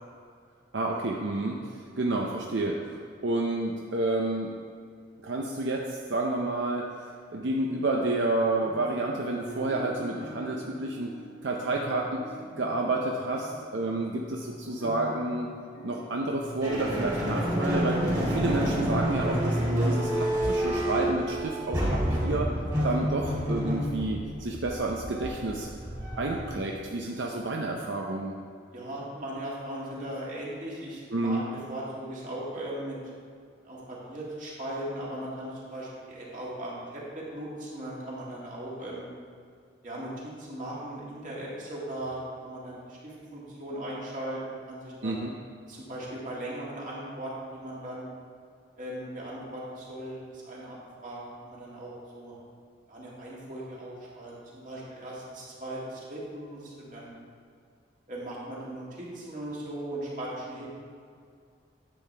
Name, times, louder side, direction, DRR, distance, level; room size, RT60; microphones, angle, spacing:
voice 1, 0.7-1.6 2.0-4.5 5.2-6.9 7.3-11.1 11.4-12.2 12.6-15.5 15.8-19.6 19.8-22.5 22.8-25.7 26.2-28.3 31.1-31.4 45.0-45.3, right 2 dB, 75° right, 0 dB, 0.6 m, -30 dB
sound 1, 8.6-19.1, equal, 75° left, 1.2 m, -45 dB
sound 2, 16.6-26.7, equal, 20° right, 2.1 m, -29 dB
voice 2, 26.2-26.5 28.7-31.4 31.7-33.0 33.6-39.1 39.8-45.2 45.7-48.1 48.8-50.8 51.0-52.4 52.9-57.1 58.1-60.7, right 1 dB, 40° right, -6 dB, 2.1 m, -38 dB
10.5 x 7.5 x 3.4 m, 2.3 s
head